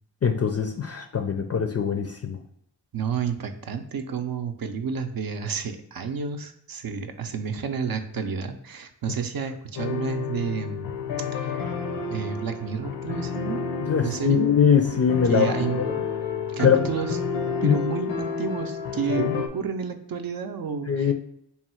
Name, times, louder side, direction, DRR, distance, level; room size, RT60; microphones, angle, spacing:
voice 1, 0.2-2.4 13.9-15.5 16.6-16.9 17.6-17.8 19.2-19.3 20.9-21.1, left 7 dB, 40° left, 5 dB, 0.4 m, -22 dB
voice 2, 2.9-11.0 11.3-11.7 12.1-13.6 14.0-14.5 15.3-16.1 16.5-17.2 17.6-21.1, right 6 dB, 55° right, 7 dB, 0.5 m, -30 dB
sound 1, 9.8-19.5, left 5 dB, 85° left, 0.6 m, -30 dB
3.6 x 2.3 x 4.2 m, 0.73 s
cardioid pair, 50°, 42 cm